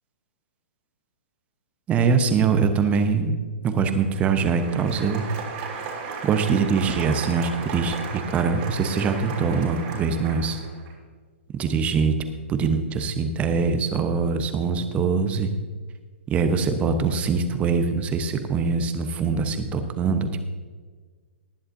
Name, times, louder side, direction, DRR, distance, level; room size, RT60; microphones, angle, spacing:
voice 1, 1.9-3.4 3.6-5.2 6.2-10.6 11.5-12.1 12.5-15.5 16.3-20.3, right 5 dB, 20° right, 8 dB, 1.0 m, -23 dB
Applause, 4.0-10.9, right 5 dB, 40° right, 3.1 m, -35 dB
19.0 x 11.0 x 2.7 m, 1.5 s
figure-of-eight pair, 120°, 7 cm